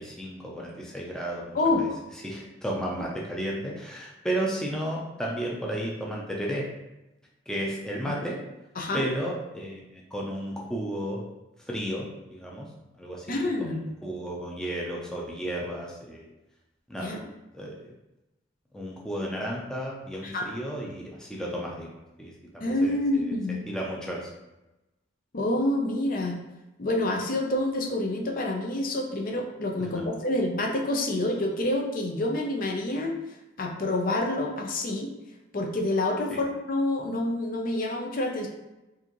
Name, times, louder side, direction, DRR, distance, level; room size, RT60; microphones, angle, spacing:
voice 1, 0.0-1.9 2.2-6.6 7.5-8.4 8.9-11.2 11.6-12.7 13.0-16.3 16.9-17.2 17.5-17.8 18.7-21.9 22.2-23.4 23.7-24.3 29.9-30.0 36.3-36.4, right 1 dB, 5° left, -3 dB, 0.5 m, -33 dB
voice 2, 1.5-1.9 8.0-8.2 8.8-9.1 13.3-13.8 17.0-17.2 20.2-20.6 22.6-23.7 25.3-26.4 26.8-33.1 33.6-35.1 35.5-38.5, left 1 dB, 45° left, 1 dB, 0.6 m, -27 dB
4.8 x 2.7 x 2.9 m, 0.99 s
head